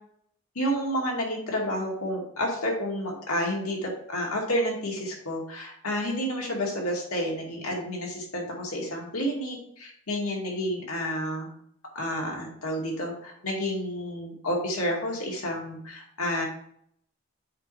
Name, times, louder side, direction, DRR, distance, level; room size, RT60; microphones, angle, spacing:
voice 1, 0.6-11.5 11.9-16.4, equal, 90° left, -1 dB, 2.3 m, -30 dB
7.7 x 5.2 x 4.9 m, 0.68 s
head